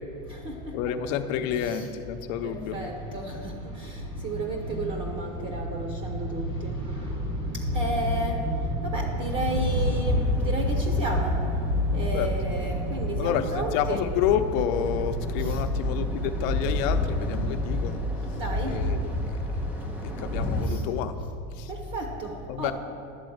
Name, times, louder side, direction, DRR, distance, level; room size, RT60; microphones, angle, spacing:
voice 1, 0.2-1.0 1.6-1.9 2.2-14.0 15.0-16.3 16.9-20.3 20.6-20.9 21.7-22.7, equal, 30° right, 1 dB, 0.7 m, -29 dB
voice 2, 0.7-2.8 12.1-12.3 13.2-18.0 18.7-19.3 20.0-21.1 21.6-21.7 22.5-22.7, left 9 dB, 70° left, 8 dB, 0.7 m, -29 dB
sound 1, 9.2-20.7, left 2 dB, 5° right, 0.3 m, -33 dB
11.0 x 4.1 x 7.9 m, 2.5 s
cardioid pair, 165°, 41 cm